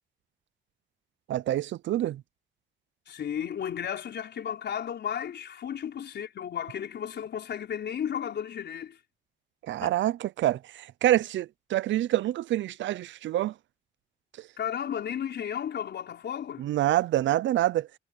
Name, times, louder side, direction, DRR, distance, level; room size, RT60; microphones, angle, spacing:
voice 1, 1.3-2.2 9.6-13.5 16.6-17.9, right 13 dB, 80° right, 0.6 m, -26 dB
voice 2, 3.1-9.0 9.8-10.0 14.6-16.7, left 9 dB, 65° left, 4.6 m, -34 dB
cardioid pair, 110°, 19 cm